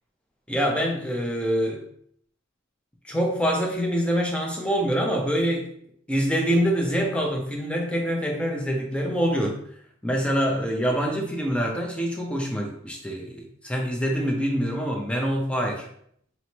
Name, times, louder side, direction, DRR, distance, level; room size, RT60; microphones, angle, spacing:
voice 1, 0.5-1.8 3.0-5.7 6.1-9.6 10.0-15.9, equal, 5° left, 1 dB, 0.6 m, -25 dB
4.2 x 3.0 x 2.9 m, 0.67 s
head